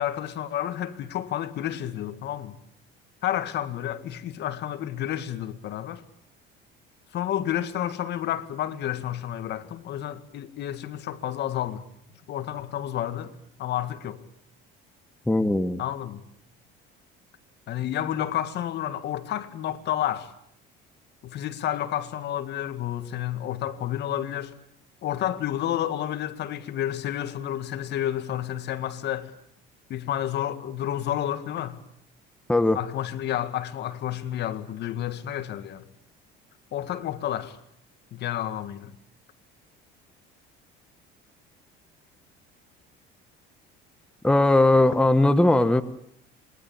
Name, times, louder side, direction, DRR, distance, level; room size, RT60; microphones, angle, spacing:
voice 1, 0.0-2.5 3.2-6.0 7.1-11.8 12.3-14.2 15.8-16.2 17.7-20.3 21.2-24.5 25.0-29.3 29.9-31.8 32.7-35.8 36.7-37.6 38.1-38.9, left 11 dB, 55° left, 2.0 m, -30 dB
voice 2, 15.3-15.8 32.5-32.8 44.2-45.8, left 2 dB, 5° left, 1.2 m, -19 dB
27.5 x 22.0 x 8.8 m
cardioid pair, 140°, 21 cm